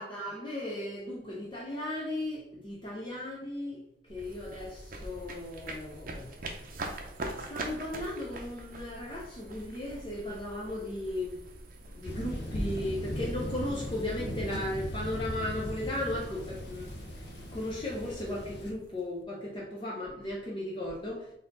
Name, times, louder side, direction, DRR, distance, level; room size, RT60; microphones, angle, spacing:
voice 1, 0.0-3.8 4.1-6.7 7.3-11.4 11.9-16.9 17.1-17.2 17.5-21.3, left 1 dB, 30° left, -4 dB, 0.6 m, -36 dB
sound 1, 4.1-19.2, right 2 dB, 50° right, 0.6 m, -44 dB
Thunder, 12.0-18.7, equal, 70° left, 0.6 m, -38 dB
4.1 x 2.6 x 3.8 m, 0.82 s
head